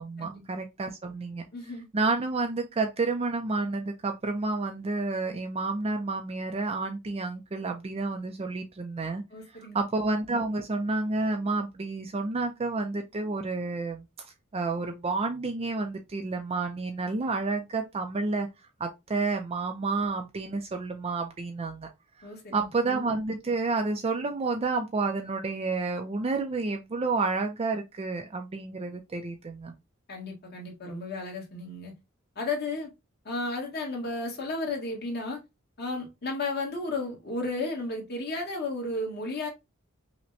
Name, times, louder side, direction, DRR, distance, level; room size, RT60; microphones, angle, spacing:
voice 1, 0.0-9.2 9.7-18.5 18.8-21.9 22.2-29.7, right 3 dB, 30° right, 0.4 m, -30 dB
voice 2, 1.5-1.9 9.3-9.8 22.2-22.6 30.1-31.9 32.3-32.9 33.2-35.4 35.8-39.5, left 2 dB, 50° left, 1.4 m, -33 dB
5.7 x 2.1 x 2.6 m
head